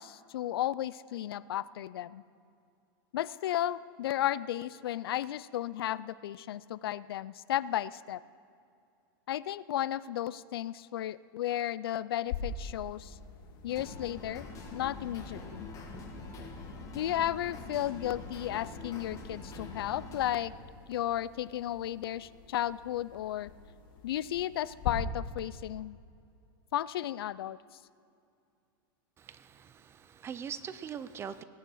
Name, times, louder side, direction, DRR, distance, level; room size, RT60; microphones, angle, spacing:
voice 1, 0.0-2.2 3.1-8.2 9.3-13.2 13.6-15.7 16.9-20.5 20.9-23.5 24.0-26.0 26.7-27.6, left 12 dB, 85° left, 18 dB, 0.4 m, -34 dB
sound 1, 12.3-24.9, left 7 dB, 65° left, 1.8 m, -46 dB
sound 2, 13.7-20.4, left 2 dB, 25° left, 2.2 m, -44 dB
voice 2, 29.2-31.4, right 7 dB, 20° right, 14 dB, 0.5 m, -42 dB
17.5 x 9.4 x 6.3 m, 2.5 s
supercardioid pair, 140°, 12 cm